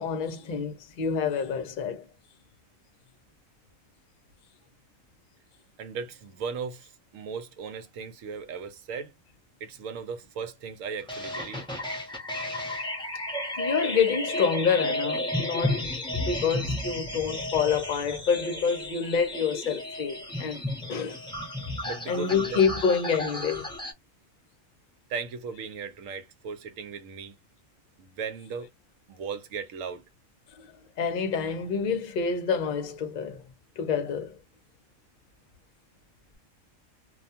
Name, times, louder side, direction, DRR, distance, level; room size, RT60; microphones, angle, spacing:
voice 1, 0.0-2.1 13.6-15.9 16.1-20.6 20.9-21.2 22.1-23.7 31.0-33.4 33.8-34.4, left 6 dB, 50° left, 0.6 m, -27 dB
voice 2, 5.8-9.1 9.6-11.7 21.9-22.6 25.1-27.4 28.0-28.7 29.1-30.0, right 6 dB, 80° right, 1.0 m, -37 dB
sound 1, 11.1-23.9, left 1 dB, 5° left, 0.5 m, -33 dB
2.4 x 2.3 x 2.7 m
omnidirectional pair, 1.4 m